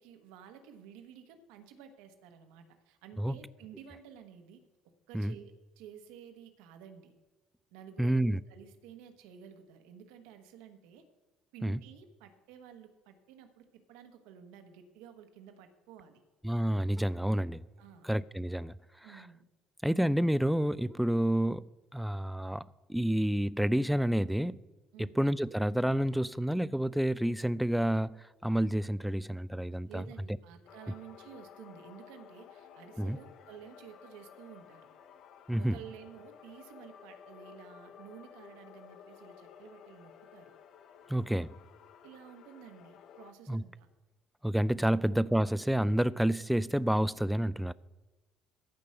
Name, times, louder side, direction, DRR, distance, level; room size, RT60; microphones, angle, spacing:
voice 1, 0.0-4.6 5.1-7.1 7.7-11.0 11.5-16.2 17.8-18.1 19.0-19.4 24.9-25.2 29.9-34.9 35.6-40.5 42.0-43.9 44.8-45.0, right 8 dB, 70° right, 1.3 m, -52 dB
voice 2, 8.0-8.4 11.6-11.8 16.4-17.6 18.0-18.8 19.1-19.2 19.8-24.6 25.0-30.0 33.0-33.2 35.5-35.8 41.1-41.5 43.5-43.6 44.4-47.7, right 1 dB, 5° right, 0.4 m, -29 dB
sound 1, 30.7-43.3, left 8 dB, 55° left, 0.8 m, -54 dB
14.5 x 5.3 x 7.6 m
figure-of-eight pair, 55°, 0 cm